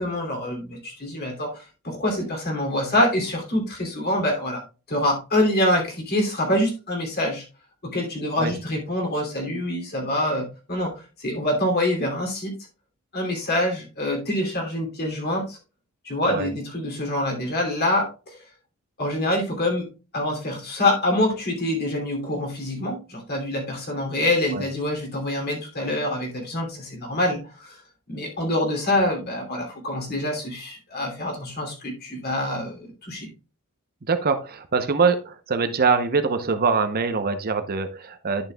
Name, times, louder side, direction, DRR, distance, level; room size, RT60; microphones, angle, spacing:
voice 1, 0.0-4.6 4.9-7.4 7.8-12.5 13.1-15.6 16.0-18.4 19.0-27.8 28.1-33.3, left 1 dB, 50° left, 1 dB, 2.8 m, -25 dB
voice 2, 34.1-38.5, right 4 dB, 45° right, 9 dB, 0.8 m, -23 dB
11.0 x 6.4 x 2.3 m, 0.32 s
head